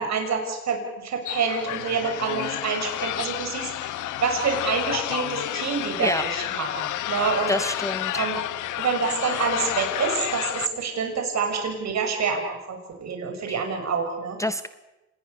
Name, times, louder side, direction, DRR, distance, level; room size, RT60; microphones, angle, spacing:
voice 1, 0.0-7.5 8.1-8.4 8.8-14.4, right 5 dB, 65° right, 3 dB, 6.6 m, -27 dB
sound 1, 1.3-10.7, left 14 dB, 80° left, 1.0 m, -30 dB
voice 2, 7.5-8.2 13.5-13.6 14.4-14.7, left 1 dB, 10° left, 14 dB, 0.8 m, -27 dB
27.0 x 20.5 x 6.9 m, 1.0 s
cardioid pair, 90°, 30 cm